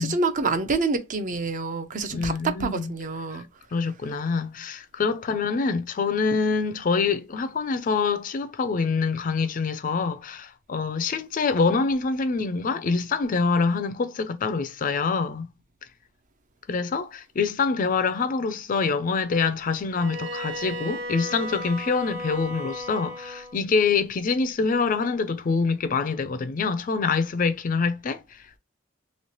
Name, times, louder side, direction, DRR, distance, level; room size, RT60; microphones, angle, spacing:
voice 1, 0.0-3.5, right 3 dB, 40° right, 0.5 m, -27 dB
voice 2, 2.1-2.9 3.3-3.4 3.7-15.5 16.7-28.6, left 4 dB, 40° left, 0.4 m, -25 dB
Bowed string instrument, 19.9-23.6, equal, 85° right, 1.4 m, -35 dB
3.1 x 2.8 x 2.8 m
head